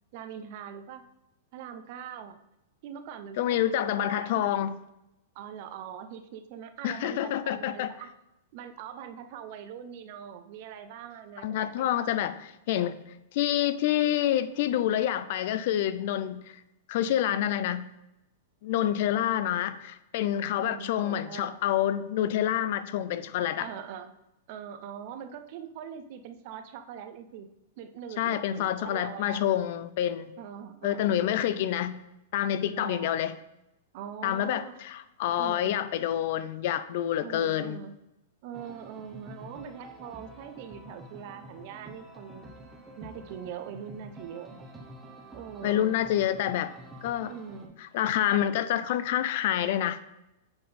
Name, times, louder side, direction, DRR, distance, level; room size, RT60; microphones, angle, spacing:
voice 1, 0.1-1.0 1.5-2.4 2.8-4.5 5.3-8.1 8.5-12.2 20.6-21.6 23.6-24.1 24.5-27.5 27.8-29.4 30.4-31.3 32.7-33.1 33.9-34.8 35.4-35.9 37.2-37.9 38.4-42.5 43.0-44.7 45.3-46.0 47.3-47.8, right 8 dB, 45° right, 9 dB, 0.5 m, -42 dB
voice 2, 3.4-4.8 6.8-7.9 11.4-13.0 13.3-16.6 16.9-17.9 18.6-23.7 28.2-30.3 30.8-32.0 32.3-33.3 34.2-37.8 45.6-46.7 47.0-47.3 47.8-50.0, left 11 dB, 50° left, 14 dB, 0.4 m, -27 dB
sound 1, 38.5-47.7, right 1 dB, 5° right, 0.8 m, -48 dB
7.7 x 3.6 x 4.2 m, 0.90 s
supercardioid pair, 160°, 0 cm